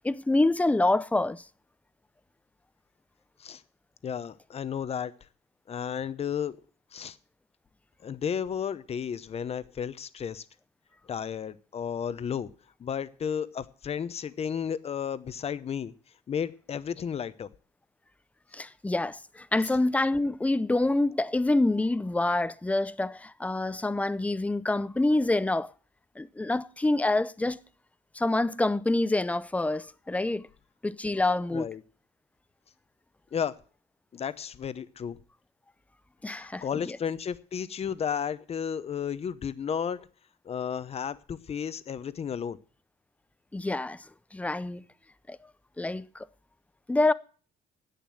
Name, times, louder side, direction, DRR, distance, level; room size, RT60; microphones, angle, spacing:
voice 1, 0.0-1.4 18.5-25.7 26.2-27.6 28.1-30.5 30.8-31.7 36.2-37.0 43.5-44.0 44.3-44.8 45.3-45.4 45.8-46.2 46.9-47.1, left 2 dB, 10° left, 0.6 m, -26 dB
voice 2, 4.0-5.1 5.7-6.6 6.9-7.2 8.0-10.5 11.1-12.5 12.8-15.9 16.3-17.5 31.5-31.8 33.3-33.6 34.1-35.2 36.3-40.1 40.4-42.6, left 7 dB, 40° left, 0.8 m, -33 dB
10.5 x 8.4 x 7.6 m
cardioid pair, 110°, 17 cm